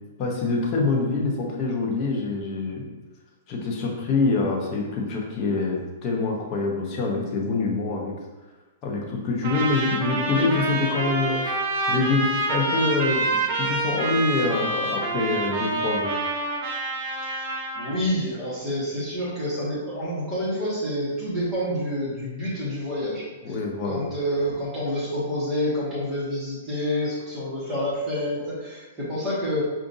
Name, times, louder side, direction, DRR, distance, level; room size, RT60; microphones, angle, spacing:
voice 1, 0.2-2.9 3.5-8.1 8.8-11.5 11.9-16.1 23.4-24.0, left 3 dB, 30° left, -2 dB, 0.8 m, -25 dB
Trumpet, 9.4-18.0, right 2 dB, 40° right, 0.7 m, -27 dB
voice 2, 17.7-23.5 23.8-29.6, equal, 15° right, -9 dB, 1.4 m, -28 dB
4.9 x 2.5 x 2.6 m, 1.2 s
hypercardioid pair, 150°, 0 cm